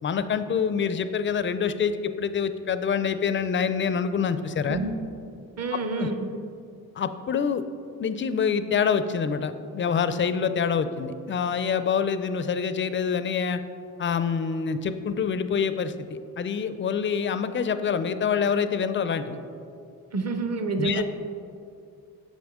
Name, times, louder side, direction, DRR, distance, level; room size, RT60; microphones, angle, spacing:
voice 1, 0.0-4.8 5.7-6.1 7.0-7.6 8.0-13.6 14.0-19.4 20.8-21.0, left 6 dB, 30° left, 11 dB, 0.4 m, -26 dB
voice 2, 5.6-6.3 20.1-21.0, right 3 dB, 40° right, 7 dB, 0.7 m, -28 dB
6.7 x 6.3 x 3.6 m, 2.5 s
cardioid pair, 85°, 39 cm